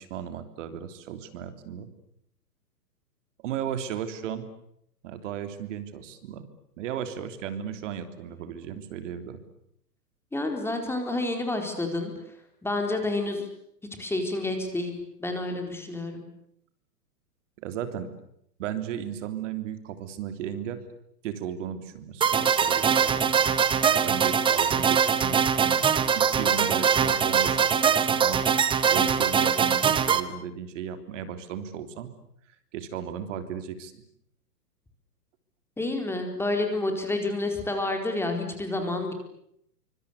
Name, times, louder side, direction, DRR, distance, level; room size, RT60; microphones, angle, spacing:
voice 1, 0.0-1.9 3.4-4.5 5.0-6.4 6.8-9.4 17.6-18.1 18.6-20.8 21.2-25.8 26.2-28.5 28.9-32.1 32.7-33.9, right 8 dB, 50° right, 9 dB, 3.5 m, -35 dB
voice 2, 10.3-12.1 12.6-13.4 14.0-14.9 15.2-16.3 35.8-39.1, left 2 dB, 5° left, 4 dB, 4.3 m, -29 dB
sound 1, 22.2-30.2, right 7 dB, 10° right, 1.1 m, -22 dB
26.0 x 25.0 x 8.2 m, 0.74 s
hypercardioid pair, 125°, 48 cm